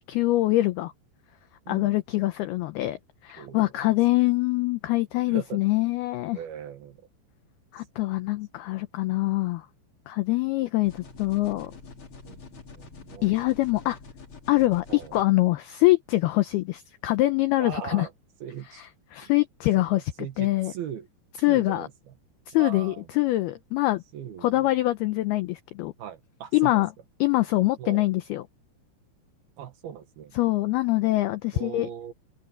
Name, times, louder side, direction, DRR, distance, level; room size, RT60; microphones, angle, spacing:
voice 1, 0.1-0.9 1.7-3.0 3.2-6.4 7.7-9.7 10.1-11.7 13.2-14.0 14.5-14.8 15.1-18.1 19.1-20.0 20.4-20.7 21.4-21.9 22.5-24.0 24.4-25.9 26.5-26.9 27.2-28.4 30.4-31.9, left 18 dB, 85° left, 2.2 m, -24 dB
voice 2, 1.7-2.0 3.4-3.9 5.3-5.6 6.3-7.1 7.8-7.9 12.3-13.3 14.9-15.1 17.6-18.1 18.4-18.9 19.2-19.3 19.8-21.1 21.5-22.1 22.5-23.1 24.1-24.7 26.0-26.8 27.8-28.0 29.6-30.4 31.5-32.1, right 9 dB, 65° right, 2.9 m, -39 dB
sound 1, 10.8-15.2, left 4 dB, 35° left, 2.5 m, -46 dB
open air
omnidirectional pair, 5.5 m